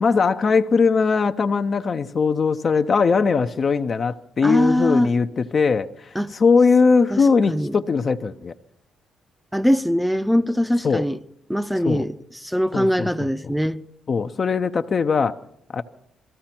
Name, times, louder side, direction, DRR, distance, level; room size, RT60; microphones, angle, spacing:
voice 1, 0.0-8.5 10.8-11.0 11.8-12.0 12.7-13.1 14.1-15.3 15.7-15.8, left 5 dB, 45° left, 0.6 m, -20 dB
voice 2, 4.4-5.1 6.1-6.3 7.1-7.2 7.5-7.8 9.5-11.2 11.5-12.1 12.4-13.8, equal, ahead, 0.6 m, -21 dB
22.0 x 14.5 x 4.4 m
cardioid pair, 90°, 0 cm